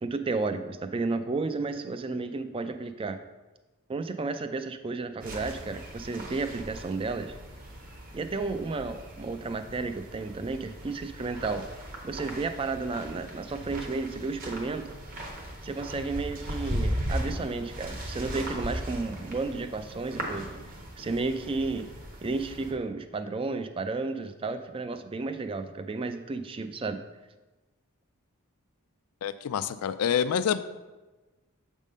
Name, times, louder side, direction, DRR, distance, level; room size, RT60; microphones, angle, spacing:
voice 1, 0.0-3.2 3.9-7.4 8.1-11.6 12.0-15.0 15.6-20.6 21.0-21.9 22.2-27.0, right 3 dB, 25° right, 9 dB, 0.3 m, -32 dB
sound 1, 5.2-22.7, equal, 40° right, 1.1 m, -38 dB
voice 2, 29.2-30.6, left 8 dB, 85° left, 13 dB, 0.4 m, -27 dB
7.3 x 3.6 x 5.2 m, 1.2 s
head